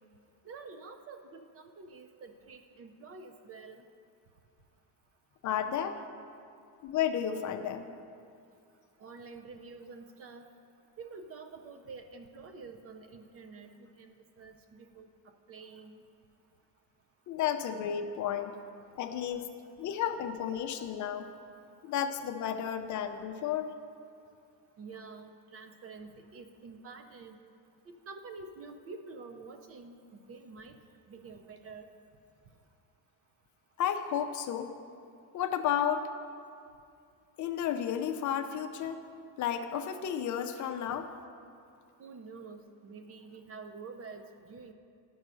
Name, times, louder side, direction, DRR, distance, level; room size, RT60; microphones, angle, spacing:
voice 1, 0.4-3.9 9.0-10.5 11.0-15.1 15.5-16.1 19.3-19.4 24.8-27.4 27.9-30.8 31.1-31.9 42.0-44.7, right 4 dB, 35° right, 6 dB, 0.5 m, -48 dB
voice 2, 5.4-6.0 6.8-7.9 17.3-18.6 18.9-19.5 19.8-21.3 21.8-23.7 33.8-34.7 35.3-36.1 37.4-39.0 39.4-41.1, left 9 dB, 45° left, 7 dB, 0.5 m, -32 dB
10.5 x 5.4 x 6.2 m, 2.4 s
cardioid pair, 165°, 41 cm